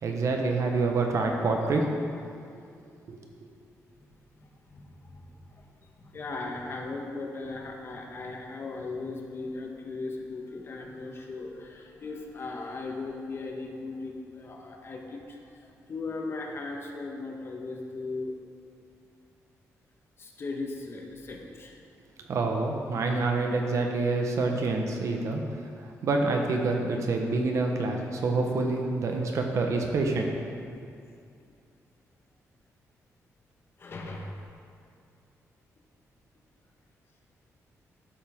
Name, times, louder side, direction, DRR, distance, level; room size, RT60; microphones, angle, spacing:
voice 1, 0.0-1.9 3.1-3.2 22.3-30.3, right 3 dB, 60° right, 2 dB, 1.2 m, -27 dB
voice 2, 3.7-4.1 4.4-18.3 20.2-21.8 33.8-34.4, left 3 dB, 45° left, 1 dB, 1.3 m, -38 dB
12.5 x 7.4 x 3.7 m, 2.4 s
cardioid pair, 105°, 6 cm